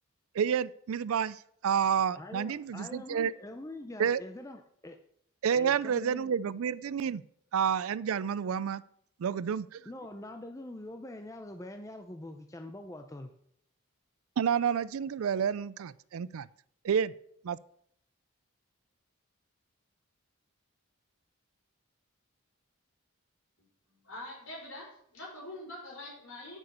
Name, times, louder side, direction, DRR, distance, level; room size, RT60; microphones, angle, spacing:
voice 1, 0.3-3.3 4.0-4.2 5.4-7.2 7.5-8.8 9.2-9.8 14.4-16.5 16.8-17.1 17.4-17.6, right 7 dB, 75° right, 19 dB, 0.4 m, -29 dB
voice 2, 2.1-5.0 5.5-6.4 9.9-13.3, left 1 dB, 15° left, 5 dB, 0.5 m, -44 dB
voice 3, 24.0-26.6, left 1 dB, 70° left, -2 dB, 5.0 m, -44 dB
9.5 x 6.3 x 6.7 m, 0.69 s
head